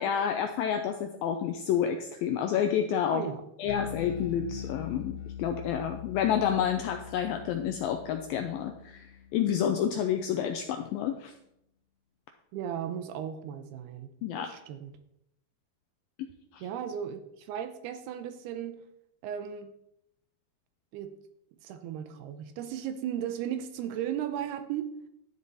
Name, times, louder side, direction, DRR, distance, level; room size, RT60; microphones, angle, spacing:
voice 1, 0.0-3.2 3.6-11.3 14.2-14.5 16.2-16.6, left 9 dB, 85° left, 6 dB, 2.1 m, -29 dB
voice 2, 3.1-3.4 12.5-14.1 14.4-15.0 16.6-18.8 19.2-19.7 20.9-21.2 21.6-24.9, right 9 dB, 75° right, 9 dB, 2.6 m, -36 dB
Bass guitar, 3.7-10.1, left 9 dB, 70° left, 2.5 m, -42 dB
11.5 x 9.6 x 4.1 m, 0.79 s
omnidirectional pair, 4.9 m